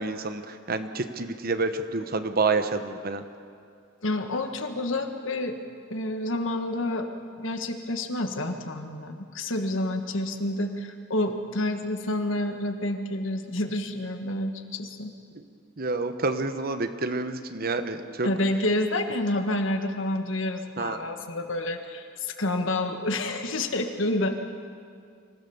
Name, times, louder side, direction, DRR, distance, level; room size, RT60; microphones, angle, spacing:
voice 1, 0.0-3.2 15.8-18.3 20.8-21.0, right 3 dB, 50° right, 9 dB, 1.1 m, -28 dB
voice 2, 4.0-5.6 5.9-7.1 7.4-15.1 18.2-24.4, left 1 dB, 70° left, 6 dB, 1.7 m, -29 dB
25.5 x 16.0 x 7.1 m, 2.3 s
head